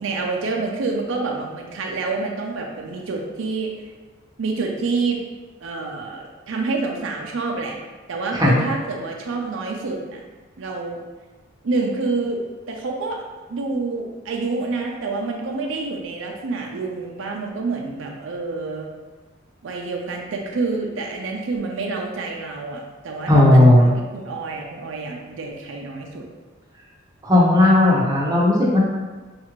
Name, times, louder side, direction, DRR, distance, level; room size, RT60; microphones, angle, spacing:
voice 1, 0.0-3.7 4.4-5.2 5.6-7.7 8.1-10.2 10.6-11.0 11.6-13.2 13.5-18.9 19.6-26.3, right 3 dB, 70° right, 0 dB, 0.5 m, -27 dB
voice 2, 23.3-23.9 27.2-28.8, left 1 dB, 20° right, -5 dB, 0.8 m, -14 dB
5.3 x 2.4 x 3.0 m, 1.3 s
head